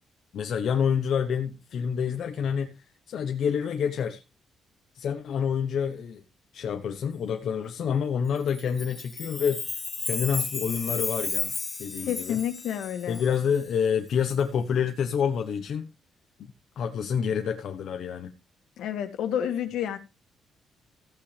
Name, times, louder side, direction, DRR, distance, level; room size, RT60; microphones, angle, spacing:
voice 1, 0.3-4.2 4.9-6.2 6.5-11.5 11.8-12.4 13.1-15.9 16.4-18.3, left 7 dB, 55° left, 1.0 m, -28 dB
Chime, 8.5-13.6, left 4 dB, 20° left, 0.9 m, -34 dB
voice 2, 12.1-13.2 18.8-20.0, left 9 dB, 75° left, 2.1 m, -29 dB
15.0 x 8.7 x 3.4 m
cardioid pair, 170°, 0 cm